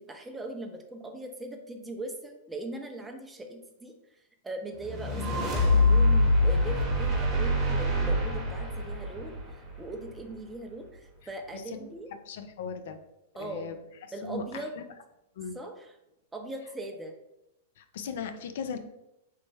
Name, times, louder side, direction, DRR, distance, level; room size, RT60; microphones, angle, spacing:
voice 1, 0.0-12.1 13.4-13.7 14.1-14.8 15.5-15.9 16.3-17.1, right 1 dB, 10° right, 3 dB, 0.5 m, -40 dB
sound 1, 4.8-10.1, left 1 dB, 25° right, 0.9 m, -25 dB
voice 2, 11.5-13.0 13.4-13.8 14.2-14.8 15.4-15.6 17.8-18.8, left 5 dB, 65° left, 8 dB, 0.3 m, -38 dB
3.2 x 2.0 x 3.3 m, 0.85 s
hypercardioid pair, 115°, 0 cm